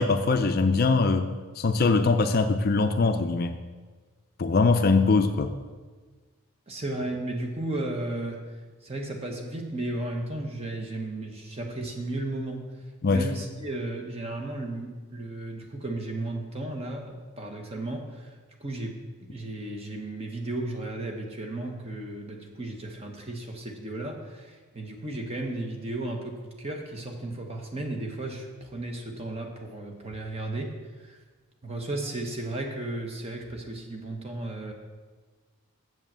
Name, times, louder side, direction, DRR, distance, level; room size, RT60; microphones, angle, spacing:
voice 1, 0.0-3.6 4.4-5.5 13.0-13.3, left 3 dB, 45° left, 8 dB, 0.4 m, -22 dB
voice 2, 6.7-8.4 8.8-12.7 13.1-18.3 18.6-19.0 19.3-31.2 31.6-34.7, right 2 dB, 25° right, 2 dB, 1.0 m, -34 dB
7.5 x 5.5 x 7.4 m, 1.4 s
head